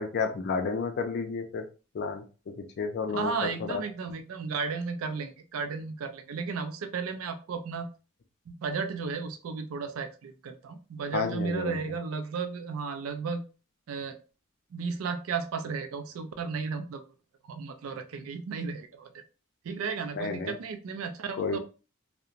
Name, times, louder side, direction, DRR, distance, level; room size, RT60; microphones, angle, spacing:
voice 1, 0.0-1.6 1.9-2.2 2.8-3.3 3.6-3.8 11.1-11.7 20.2-20.5 21.4-21.6, left 5 dB, 50° left, 6 dB, 0.4 m, -30 dB
voice 2, 3.1-7.9 8.5-13.4 13.9-14.2 14.7-17.0 17.5-19.1 19.6-21.6, right 5 dB, 75° right, 8 dB, 0.4 m, -34 dB
2.8 x 2.0 x 2.4 m, 0.34 s
head